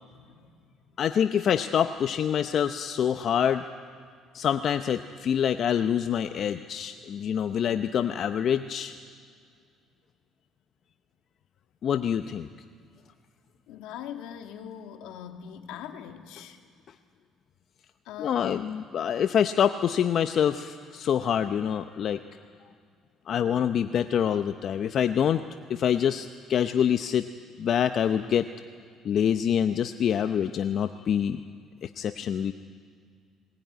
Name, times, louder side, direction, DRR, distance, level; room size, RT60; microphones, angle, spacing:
voice 1, 0.1-0.7 13.7-16.6 18.1-18.6, left 9 dB, 85° left, 5 dB, 1.9 m, -42 dB
voice 2, 1.0-3.6 4.3-9.0 11.8-12.5 18.2-22.2 23.3-25.4 25.7-27.3 27.6-28.5 29.0-31.4 31.8-32.5, left 8 dB, 55° left, 9 dB, 0.7 m, -26 dB
20.5 x 19.0 x 9.3 m, 2.2 s
supercardioid pair, 85°, 0 cm